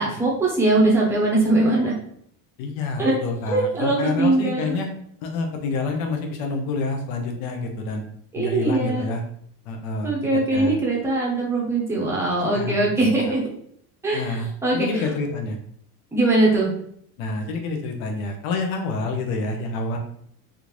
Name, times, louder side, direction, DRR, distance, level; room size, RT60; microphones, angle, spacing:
voice 1, 0.0-1.9 3.0-3.1 3.5-4.8 8.3-9.0 10.0-13.4 14.0-15.1 16.1-16.7, right 2 dB, 5° right, -4 dB, 0.6 m, -21 dB
voice 2, 2.6-4.9 5.2-8.0 8.4-9.2 9.7-10.1 10.5-10.7 12.5-13.3 14.1-14.5 14.7-15.6 17.2-20.0, left 3 dB, 75° left, 3 dB, 0.8 m, -28 dB
3.5 x 2.5 x 2.9 m, 0.66 s
cardioid pair, 170°, 43 cm